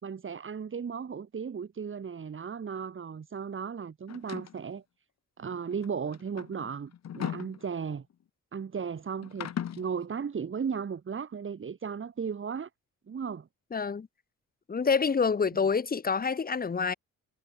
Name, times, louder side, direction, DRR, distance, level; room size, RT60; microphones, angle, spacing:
voice 1, 0.0-4.8 5.4-8.1 8.5-12.7 13.1-13.5, right 6 dB, 40° right, 4.5 m, -35 dB
sound 1, 4.1-4.6 5.7-8.1 9.2-9.9, left 9 dB, 60° left, 4.0 m, -38 dB
voice 2, 13.7-14.1 14.7-16.9, left 5 dB, 30° left, 1.5 m, -27 dB
cardioid pair, 90°, 30 cm